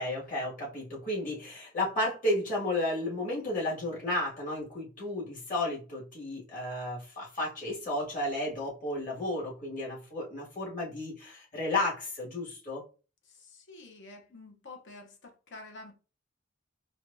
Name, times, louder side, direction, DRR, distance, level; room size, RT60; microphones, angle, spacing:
voice 1, 0.0-12.8, left 1 dB, 40° left, 1.8 m, -33 dB
voice 2, 13.2-15.9, left 2 dB, 60° left, 0.8 m, -49 dB
4.5 x 2.3 x 2.6 m
head